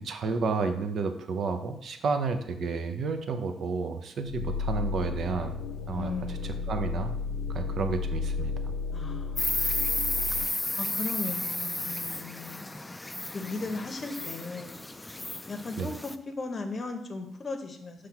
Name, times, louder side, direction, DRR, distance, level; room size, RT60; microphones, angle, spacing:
voice 1, 0.0-6.1 6.7-7.1 7.5-8.5 15.8-15.9, right 4 dB, 60° right, 7 dB, 0.7 m, -31 dB
sound 1, 4.3-10.5, left 4 dB, 85° left, 0.5 m, -33 dB
voice 2, 5.9-6.7 8.9-9.7 10.3-10.5 10.8-12.7 13.3-14.9 15.5-18.1, left 3 dB, 35° left, 6 dB, 0.9 m, -37 dB
Insect, 9.4-16.1, left 2 dB, 15° left, 0.4 m, -33 dB
5.7 x 3.3 x 5.8 m, 0.83 s
cardioid pair, 90°, 0 cm